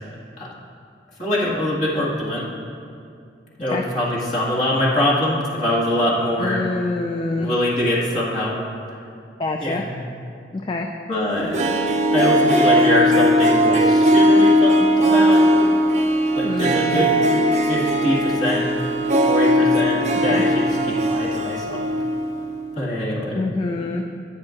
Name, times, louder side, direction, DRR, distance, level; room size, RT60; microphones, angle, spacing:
voice 1, 1.2-2.5 3.6-6.6 7.4-8.6 9.6-10.0 11.1-11.6 12.1-15.5 16.3-17.1 17.6-18.7 19.2-21.8 22.7-23.4, left 1 dB, 40° left, -7 dB, 2.1 m, -23 dB
voice 2, 6.4-7.5 9.4-9.8 10.5-10.9 16.4-17.1 20.3-20.4 23.3-24.1, left 2 dB, 25° left, 3 dB, 0.3 m, -26 dB
Harp, 11.4-22.4 22.6-22.7, equal, 40° right, 0.5 m, -18 dB
14.5 x 8.8 x 2.6 m, 2.4 s
head